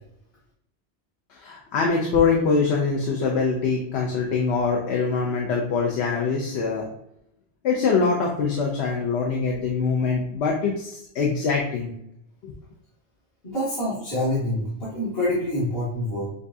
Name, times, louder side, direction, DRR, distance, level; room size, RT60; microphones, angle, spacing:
voice 1, 1.4-6.8 7.6-11.9 12.4-12.5, left 5 dB, 75° left, 0 dB, 1.0 m, -23 dB
voice 2, 13.4-16.3, left 1 dB, 60° left, -10 dB, 1.8 m, -26 dB
6.7 x 2.4 x 2.6 m, 0.78 s
omnidirectional pair, 1.2 m